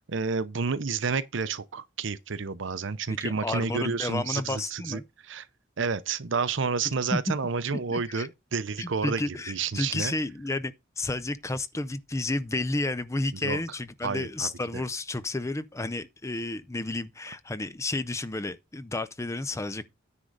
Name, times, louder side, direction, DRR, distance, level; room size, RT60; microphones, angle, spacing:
voice 1, 0.1-5.5 5.8-10.1 13.4-13.6 14.0-14.8, right 5 dB, 65° right, 0.7 m, -30 dB
voice 2, 3.1-5.0 6.8-7.4 7.9-8.3 8.8-19.9, left 2 dB, 15° left, 0.5 m, -31 dB
9.7 x 3.8 x 6.5 m
head